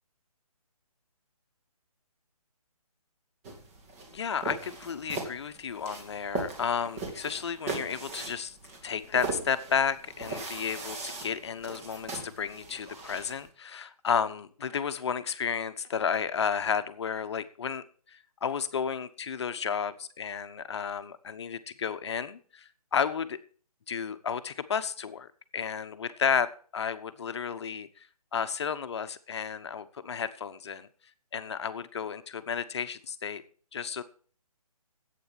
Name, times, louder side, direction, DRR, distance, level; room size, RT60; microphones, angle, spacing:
sound 1, 3.4-13.5, right 3 dB, 25° right, 2.6 m, -39 dB
voice 1, 4.1-8.5 8.8-17.8 18.1-23.4 23.9-25.3 25.5-27.9 28.3-30.9 31.3-33.4 33.7-34.0, left 7 dB, 45° left, 11 dB, 1.1 m, -32 dB
11.5 x 8.7 x 7.4 m, 0.44 s
hypercardioid pair, 160°, 19 cm